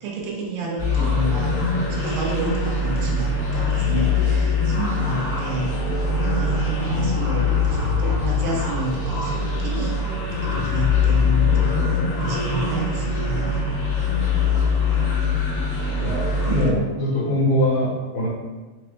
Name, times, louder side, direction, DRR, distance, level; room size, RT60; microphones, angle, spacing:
voice 1, 0.0-1.6 1.9-5.7 6.3-10.0 10.3-11.9 12.2-13.6 13.9-14.0, right 2 dB, 85° right, -3 dB, 2.7 m, -29 dB
sound 1, 0.8-16.7, left 4 dB, 60° left, 2.0 m, -22 dB
voice 2, 16.0-18.3, left 1 dB, 80° left, -6 dB, 2.8 m, -22 dB
6.5 x 2.2 x 3.1 m, 1.2 s
omnidirectional pair, 4.1 m